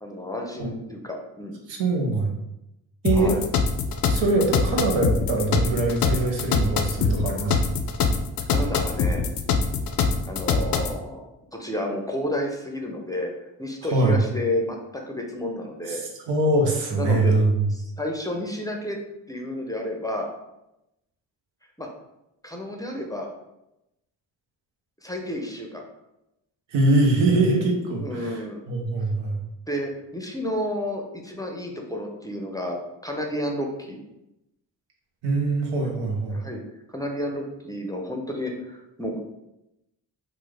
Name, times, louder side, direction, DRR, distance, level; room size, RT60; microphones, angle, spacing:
voice 1, 0.0-1.6 3.1-3.4 8.5-9.3 10.3-13.3 13.6-14.8 15.1-16.0 17.0-17.3 17.7-19.0 19.3-20.3 21.8-21.9 22.4-23.3 25.0-25.8 28.0-28.6 29.7-32.8 33.0-34.0 35.8-35.9 36.3-36.6 36.9-39.2, left 1 dB, 10° left, 1 dB, 0.5 m, -31 dB
voice 2, 1.7-2.4 3.0-3.3 4.1-7.6 13.9-14.2 15.9-16.0 16.3-17.7 26.7-28.4 28.7-29.4 35.2-36.4, right 2 dB, 80° right, 1 dB, 0.7 m, -22 dB
sound 1, 3.0-11.0, left 5 dB, 55° left, 0.5 m, -23 dB
3.0 x 2.0 x 3.4 m, 0.89 s
supercardioid pair, 45°, 44 cm